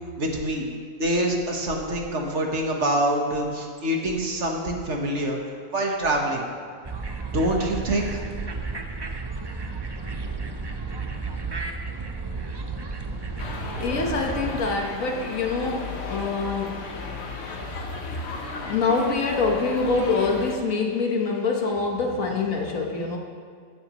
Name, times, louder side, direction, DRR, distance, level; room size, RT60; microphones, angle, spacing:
voice 1, 0.2-0.7 1.0-5.4 5.7-6.4 7.3-8.2, right 1 dB, 60° right, 1 dB, 1.6 m, -25 dB
sound 1, 6.8-14.7, right 4 dB, 30° right, 0.5 m, -33 dB
sound 2, 13.4-20.6, left 4 dB, 55° left, 1.2 m, -35 dB
voice 2, 13.8-23.2, left 4 dB, 75° left, 1 dB, 1.8 m, -26 dB
14.5 x 11.0 x 3.1 m, 2.1 s
omnidirectional pair, 1.4 m